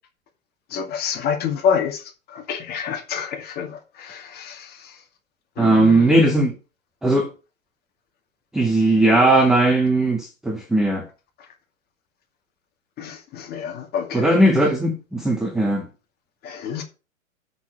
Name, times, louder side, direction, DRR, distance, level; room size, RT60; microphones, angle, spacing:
voice 1, 0.7-5.0 5.6-6.2 13.0-14.4 16.4-16.8, left 7 dB, 25° left, 2.2 m, -28 dB
voice 2, 5.6-6.6 7.0-7.3 8.5-11.1 14.1-15.9, right 1 dB, ahead, 0.7 m, -18 dB
6.7 x 5.9 x 7.5 m
hypercardioid pair, 135°, 41 cm